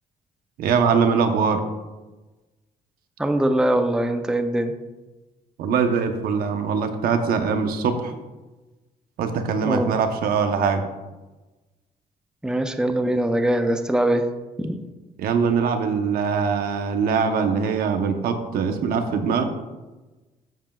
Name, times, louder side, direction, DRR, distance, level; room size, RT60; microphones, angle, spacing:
voice 1, 0.6-1.6 5.6-8.1 9.2-10.8 15.2-19.4, right 6 dB, 80° right, 6 dB, 1.0 m, -22 dB
voice 2, 3.2-4.7 9.6-9.9 12.4-14.3 14.6-14.8, right 1 dB, 5° right, 6 dB, 0.6 m, -22 dB
13.0 x 7.5 x 2.4 m, 1.2 s
cardioid pair, 120°, 15 cm